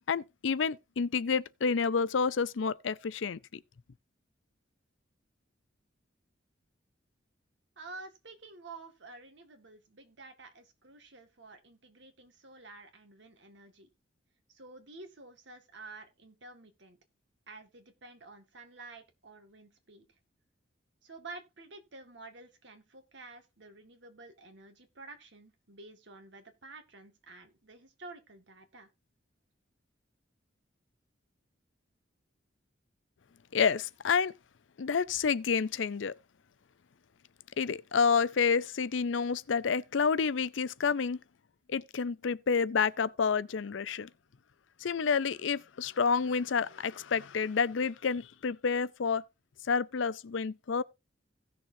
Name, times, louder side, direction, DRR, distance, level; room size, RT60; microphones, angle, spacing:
voice 1, 0.1-3.6 33.5-34.3 34.8-36.2 37.6-41.2 41.7-44.1 44.8-49.2 49.6-50.8, left 5 dB, 75° left, 0.5 m, -29 dB
voice 2, 7.8-13.9 14.5-17.0 17.5-20.1 21.0-28.9, right 3 dB, 65° right, 1.9 m, -50 dB
17.0 x 6.6 x 2.7 m
head